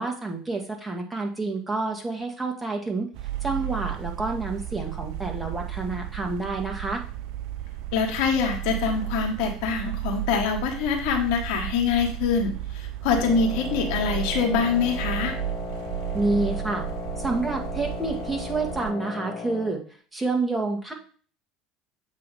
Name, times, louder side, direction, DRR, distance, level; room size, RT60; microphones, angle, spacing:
voice 1, 0.0-3.1 3.4-7.0 16.1-16.9 17.2-19.8 20.1-20.9, right 3 dB, 15° right, 2 dB, 1.8 m, -28 dB
sound 1, 3.1-18.9, right 14 dB, 60° right, 0.4 m, -33 dB
voice 2, 7.9-15.4, left 5 dB, 65° left, 2 dB, 1.4 m, -25 dB
Wind instrument woodwind instrument, 13.2-19.8, left 5 dB, 45° left, 1.1 m, -36 dB
7.4 x 3.0 x 5.5 m, 0.42 s
hypercardioid pair, 70°, 0 cm